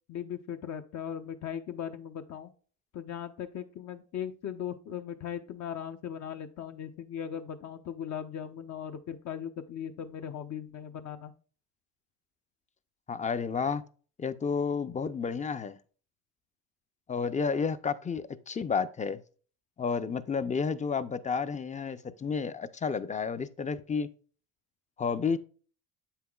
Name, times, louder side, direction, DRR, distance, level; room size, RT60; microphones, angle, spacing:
voice 1, 0.1-2.5 2.9-11.3, left 9 dB, 55° left, 0.8 m, -38 dB
voice 2, 13.1-13.8 14.2-15.7 17.1-19.2 19.8-24.1 25.0-25.4, left 5 dB, 20° left, 0.5 m, -31 dB
7.6 x 5.7 x 2.3 m
cardioid pair, 100°, 33 cm